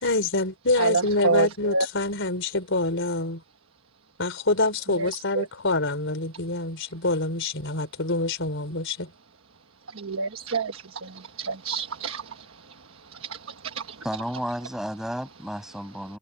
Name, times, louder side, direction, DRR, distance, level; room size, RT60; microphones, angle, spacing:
voice 1, 0.0-3.4 4.2-9.1, left 2 dB, 60° left, 4.2 m, -26 dB
voice 2, 0.8-1.9 4.9-5.1 5.3-5.5 10.0-10.7 11.4-12.2, right 4 dB, 65° right, 1.3 m, -26 dB
voice 3, 14.0-16.2, equal, ahead, 8.0 m, -32 dB
head